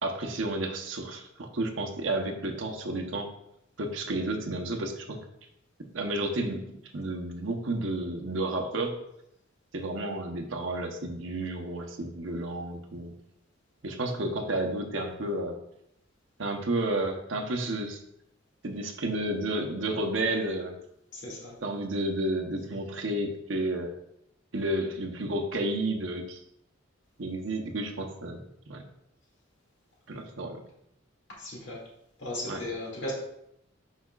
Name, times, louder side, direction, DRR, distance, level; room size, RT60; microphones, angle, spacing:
voice 1, 0.0-3.3 3.8-5.2 5.9-6.6 6.9-9.0 9.7-13.1 13.8-15.6 16.4-18.0 18.6-20.7 21.6-23.9 24.5-26.4 27.2-28.4 28.7-28.8 30.1-30.6 32.5-32.6, right 1 dB, 70° right, 3 dB, 0.9 m, -31 dB
voice 2, 21.1-21.6 31.4-31.8 32.2-33.1, left 1 dB, 60° left, -4 dB, 2.4 m, -36 dB
8.3 x 5.7 x 2.4 m, 0.76 s
head